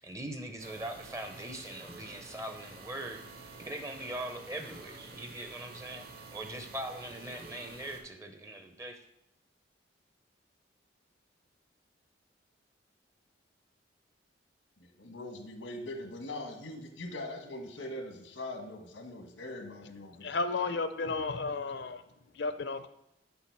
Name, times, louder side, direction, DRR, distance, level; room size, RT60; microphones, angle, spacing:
voice 1, 0.0-3.2 3.6-6.1 6.3-9.0, right 1 dB, 15° right, 6 dB, 0.5 m, -41 dB
sound 1, 0.6-8.0, right 3 dB, 50° right, 1.4 m, -49 dB
voice 2, 14.8-20.4, left 1 dB, 90° left, 4 dB, 1.3 m, -42 dB
voice 3, 20.1-22.0 22.3-22.9, left 3 dB, 65° left, 10 dB, 0.6 m, -33 dB
6.9 x 5.4 x 4.6 m, 0.84 s
head